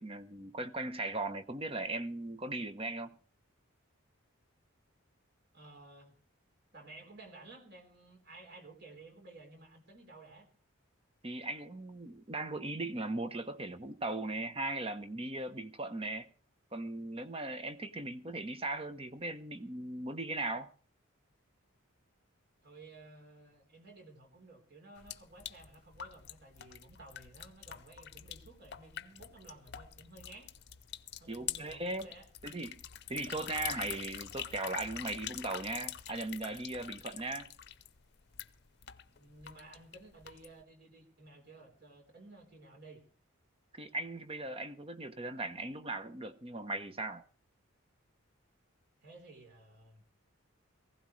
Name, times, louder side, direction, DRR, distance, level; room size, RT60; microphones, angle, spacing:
voice 1, 0.0-3.1 11.2-16.3 16.7-20.7 31.3-32.1 32.4-32.8 33.1-37.5 43.7-47.2, right 2 dB, 25° right, 0.9 m, -38 dB
voice 2, 5.5-6.1 6.7-10.5 22.6-30.5 31.2-32.3 39.0-43.0 49.0-50.0, right 2 dB, 50° right, 3.8 m, -54 dB
sound 1, 25.0-40.6, left 10 dB, 50° left, 0.7 m, -45 dB
19.0 x 16.0 x 3.2 m
head